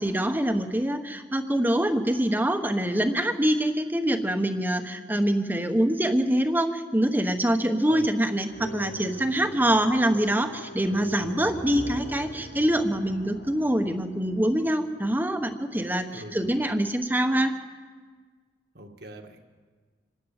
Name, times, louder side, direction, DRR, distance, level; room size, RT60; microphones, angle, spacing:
voice 1, 0.0-17.5, right 1 dB, 10° right, 7 dB, 1.1 m, -25 dB
sound 1, 8.5-15.6, equal, 70° left, 4.2 m, -42 dB
voice 2, 16.1-16.5 18.7-19.4, right 1 dB, 55° right, 3 dB, 1.9 m, -42 dB
26.0 x 13.0 x 9.0 m, 1.5 s
head